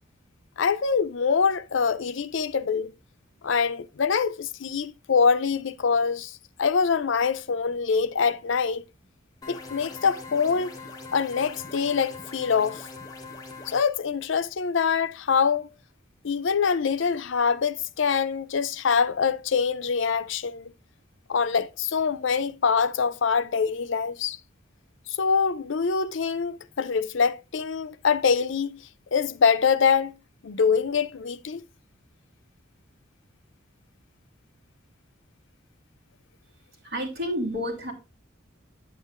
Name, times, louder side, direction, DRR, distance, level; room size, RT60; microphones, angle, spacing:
voice 1, 0.6-2.9 3.4-8.8 9.5-10.7 11.1-12.9 13.7-15.7 16.2-20.7 21.3-24.4 25.1-28.8 29.1-30.1 30.4-31.6, left 6 dB, 70° left, 0.5 m, -24 dB
sound 1, 9.4-13.8, left 3 dB, 20° left, 1.3 m, -42 dB
voice 2, 36.8-37.9, equal, 55° right, 2.9 m, -30 dB
8.9 x 8.3 x 2.5 m
head